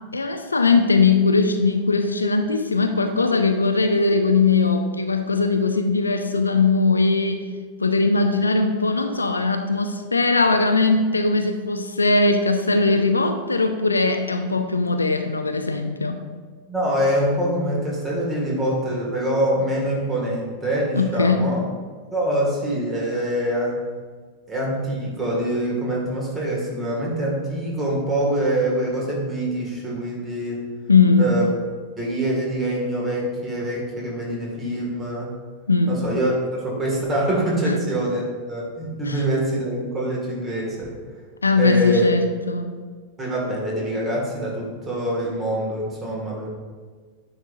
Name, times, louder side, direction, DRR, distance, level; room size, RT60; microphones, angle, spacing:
voice 1, 0.1-7.5 7.8-16.2 21.0-21.5 30.9-31.4 35.7-36.0 37.6-37.7 39.1-39.2 41.4-42.7, left 3 dB, 80° left, 7 dB, 0.4 m, -20 dB
voice 2, 16.7-21.6 22.1-23.8 24.5-30.6 31.2-31.5 32.0-35.3 35.9-41.0 41.6-42.1 43.2-46.5, right 1 dB, 20° right, -3 dB, 1.8 m, -24 dB
9.4 x 4.1 x 2.5 m, 1.5 s
figure-of-eight pair, 90°, 0 cm